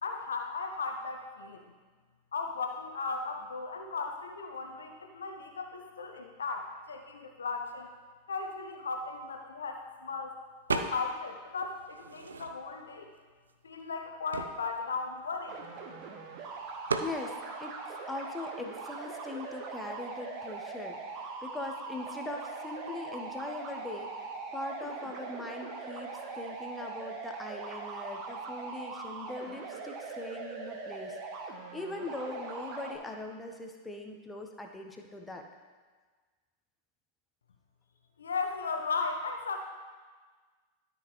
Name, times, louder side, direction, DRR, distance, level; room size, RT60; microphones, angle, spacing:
voice 1, 0.0-1.6 2.3-7.9 8.3-10.3 10.7-13.1 13.6-15.7 38.2-39.6, left 4 dB, 70° left, 4 dB, 0.7 m, -36 dB
sound 1, 10.7-11.3 11.6-12.9 13.5-13.6 13.8-16.0 16.9-17.2, right 4 dB, 70° right, 0.5 m, -36 dB
sound 2, 15.5-33.0, right 4 dB, 40° right, 1.0 m, -41 dB
voice 2, 17.0-21.0 21.4-24.1 24.5-35.4, left 2 dB, 10° left, 2 dB, 0.9 m, -41 dB
12.5 x 5.4 x 3.1 m, 1.4 s
figure-of-eight pair, 90°, 0 cm